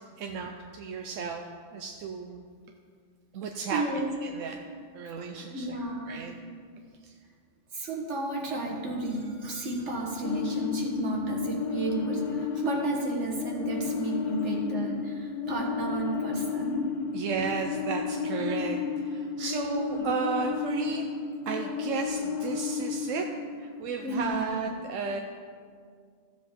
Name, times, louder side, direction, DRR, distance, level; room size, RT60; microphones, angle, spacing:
voice 1, 0.2-1.4 1.7-2.4 3.3-3.8 4.2-4.6 4.9-5.8 6.1-6.4 7.0-7.1 17.1-21.1 21.5-23.3 23.6-25.2, right 5 dB, 90° right, 3 dB, 1.0 m, -33 dB
voice 2, 3.7-4.1 5.5-6.2 7.7-16.9 19.4-19.5 19.9-20.0 24.0-24.6, right 2 dB, 70° right, 0 dB, 1.7 m, -32 dB
sound 1, 10.2-24.3, left 6 dB, 85° left, 1.0 m, -33 dB
14.5 x 7.7 x 3.6 m, 2.1 s
omnidirectional pair, 1.3 m